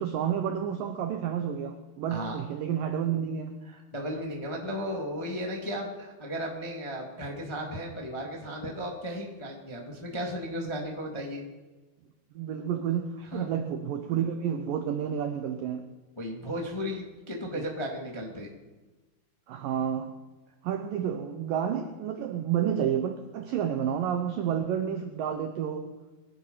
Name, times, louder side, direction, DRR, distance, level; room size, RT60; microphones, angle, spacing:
voice 1, 0.0-3.5 12.4-15.9 17.5-17.6 19.5-20.1 20.6-25.9, right 9 dB, 80° right, 7 dB, 1.9 m, -30 dB
voice 2, 2.1-2.4 3.7-11.4 13.3-13.5 16.1-18.5, equal, 15° left, 0 dB, 1.1 m, -35 dB
23.0 x 10.5 x 5.7 m, 1.2 s
omnidirectional pair, 5.2 m